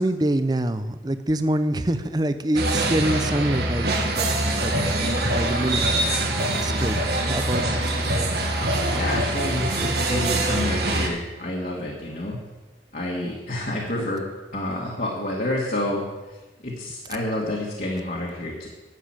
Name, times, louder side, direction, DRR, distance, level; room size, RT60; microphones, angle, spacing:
voice 1, 0.0-3.9 4.2-4.3 4.6-5.9 6.5-7.0 7.3-7.8 14.0-14.1, right 1 dB, 25° right, 10 dB, 0.6 m, -25 dB
sound 1, 2.5-11.1, right 1 dB, 65° right, 1.9 m, -24 dB
voice 2, 8.8-12.4 12.9-14.2 14.5-16.0 16.6-18.7, left 1 dB, 50° left, -3 dB, 1.9 m, -29 dB
11.0 x 7.2 x 9.0 m, 1.2 s
head